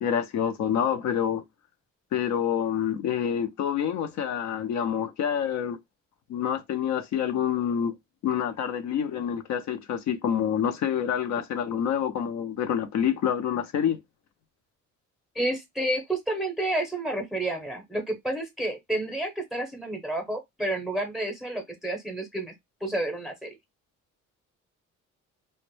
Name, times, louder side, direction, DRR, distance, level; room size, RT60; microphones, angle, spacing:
voice 1, 0.0-1.4 2.1-5.8 6.3-7.9 8.2-14.0, left 8 dB, 65° left, 0.5 m, -27 dB
voice 2, 15.3-22.5 22.8-23.5, right 1 dB, ahead, 0.6 m, -30 dB
2.1 x 2.0 x 3.0 m
cardioid pair, 90°, 30 cm